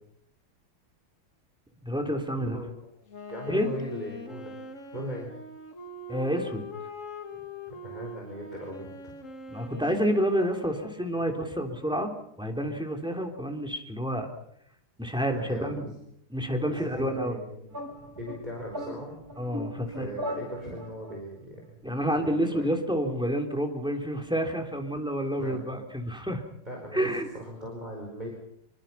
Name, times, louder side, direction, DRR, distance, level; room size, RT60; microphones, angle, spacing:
voice 1, 1.8-2.6 3.5-3.7 6.1-6.7 9.5-12.1 12.4-14.3 15.0-15.8 16.3-17.4 19.4-20.2 21.8-26.4 26.9-27.3, equal, ahead, 3 dB, 3.1 m, -29 dB
voice 2, 2.4-2.9 3.3-4.5 4.9-5.3 7.7-9.1 15.3-16.0 16.6-17.7 18.2-19.1 19.9-21.8 22.1-22.7 25.4-25.7 26.6-27.1 27.3-28.3, equal, 20° right, -1 dB, 4.9 m, -39 dB
Wind instrument woodwind instrument, 3.1-11.4, left 3 dB, 35° left, 2.2 m, -42 dB
sound 1, 17.7-21.2, equal, 40° right, 4.0 m, -38 dB
26.5 x 23.0 x 5.8 m, 0.74 s
omnidirectional pair, 2.4 m